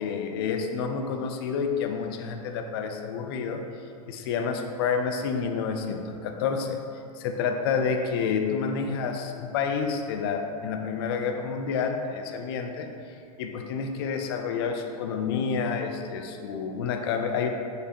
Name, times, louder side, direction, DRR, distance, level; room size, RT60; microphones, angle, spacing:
voice 1, 0.0-3.6 4.1-6.8 7.2-12.9 13.4-17.5, left 6 dB, 40° left, 4 dB, 0.4 m, -29 dB
4.1 x 3.3 x 2.8 m, 2.4 s
figure-of-eight pair, 95°, 20 cm